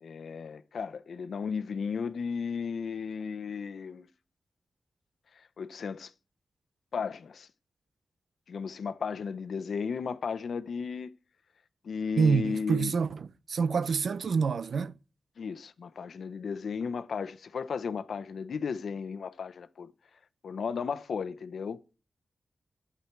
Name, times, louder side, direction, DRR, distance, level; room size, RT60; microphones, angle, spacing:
voice 1, 0.0-4.1 5.6-6.1 6.9-7.5 8.5-11.1 11.8-13.0 15.4-19.9 20.4-21.8, left 5 dB, 80° left, 0.9 m, -34 dB
voice 2, 12.2-14.9, right 5 dB, 70° right, 0.7 m, -27 dB
15.0 x 9.8 x 4.7 m
wide cardioid pair, 110°, 0 cm